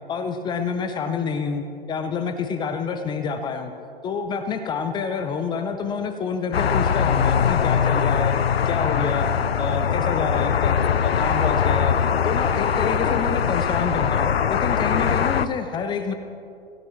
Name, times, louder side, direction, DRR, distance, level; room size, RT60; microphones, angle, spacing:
voice 1, 0.1-3.7 4.0-8.4 8.7-9.3 9.6-10.8 11.0-12.0 12.2-16.1, left 5 dB, 15° left, 8 dB, 0.7 m, -28 dB
sound 1, 6.5-15.5, left 7 dB, 70° left, 0.7 m, -21 dB
25.5 x 16.5 x 3.3 m, 2.5 s
figure-of-eight pair, 120°, 31 cm